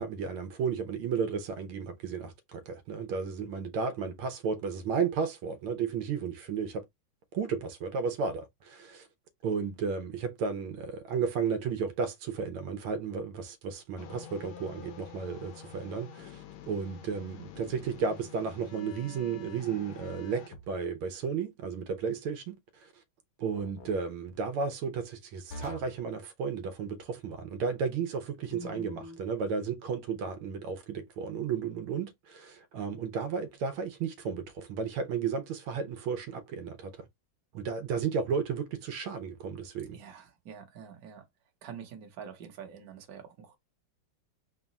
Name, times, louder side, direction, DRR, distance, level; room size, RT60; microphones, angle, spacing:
voice 1, 0.0-6.8 7.3-9.1 9.4-22.5 22.8-22.9 23.4-37.1 37.5-40.0, right 5 dB, 80° right, 1.6 m, -33 dB
sound 1, 14.0-20.5, left 10 dB, 80° left, 1.5 m, -48 dB
sound 2, 20.5-21.0 23.5-24.0 25.5-26.0 28.5-29.2, left 2 dB, 55° left, 1.2 m, -45 dB
voice 2, 39.9-41.2 41.6-43.5, right 7 dB, 55° right, 1.3 m, -46 dB
3.9 x 2.3 x 3.9 m
omnidirectional pair, 2.3 m